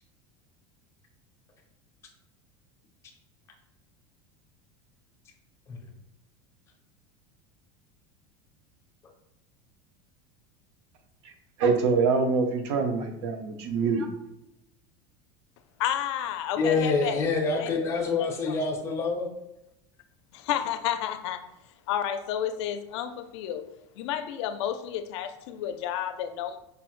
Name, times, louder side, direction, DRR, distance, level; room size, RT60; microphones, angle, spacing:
voice 1, 11.6-14.1, right 4 dB, 65° right, 6 dB, 0.6 m, -25 dB
voice 2, 15.8-17.2 17.6-17.7 18.2-18.6 20.5-21.4 21.9-23.6 24.0-26.6, left 10 dB, 75° left, 9 dB, 0.4 m, -31 dB
voice 3, 16.6-19.3, left 4 dB, 20° left, 1 dB, 0.5 m, -26 dB
5.0 x 2.0 x 3.0 m, 0.85 s
supercardioid pair, 170°, 15 cm